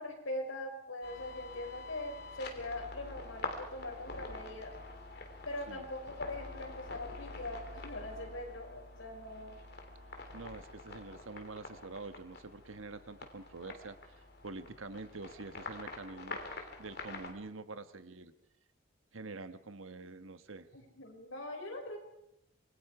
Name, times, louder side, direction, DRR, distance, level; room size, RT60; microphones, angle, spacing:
voice 1, 0.0-4.8 5.5-9.6 20.7-22.0, left 1 dB, 75° left, 2 dB, 5.9 m, -42 dB
sound 1, 1.0-17.3, left 2 dB, 50° left, 3.3 m, -46 dB
voice 2, 10.3-14.1 14.4-18.3 19.1-20.7, right 3 dB, 85° right, 10 dB, 1.3 m, -46 dB
27.0 x 22.5 x 4.9 m, 0.79 s
head